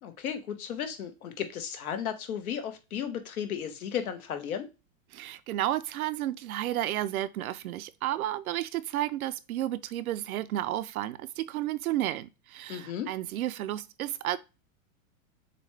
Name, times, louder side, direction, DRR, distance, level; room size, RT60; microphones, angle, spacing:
voice 1, 0.0-4.7 12.7-13.1, left 8 dB, 85° left, 1.1 m, -34 dB
voice 2, 5.1-14.4, right 13 dB, 85° right, 0.6 m, -32 dB
6.7 x 2.3 x 3.2 m
hypercardioid pair, 130°, 42 cm